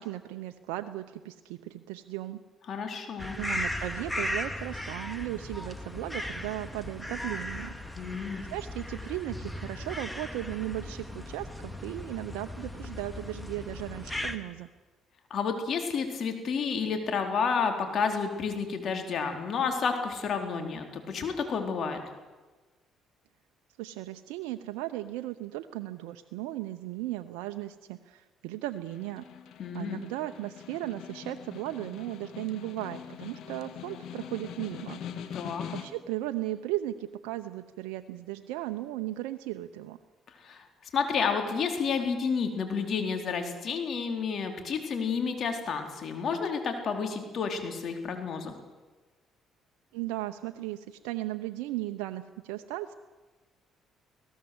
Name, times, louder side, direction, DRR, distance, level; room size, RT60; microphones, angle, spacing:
voice 1, 0.0-2.4 3.3-7.7 8.5-14.7 23.8-29.2 29.7-35.5 35.8-40.0 49.9-52.9, right 15 dB, 90° right, 7 dB, 0.7 m, -36 dB
voice 2, 2.7-3.4 8.0-8.4 15.3-22.0 29.6-30.0 35.3-35.6 40.4-40.7 40.9-48.5, left 5 dB, 55° left, 5 dB, 4.3 m, -30 dB
sound 1, 3.2-14.4, left 1 dB, 5° left, 2.3 m, -37 dB
Snare drum, 28.7-36.2, left 9 dB, 70° left, 1.8 m, -43 dB
25.0 x 17.5 x 8.0 m, 1.3 s
supercardioid pair, 75°, 0 cm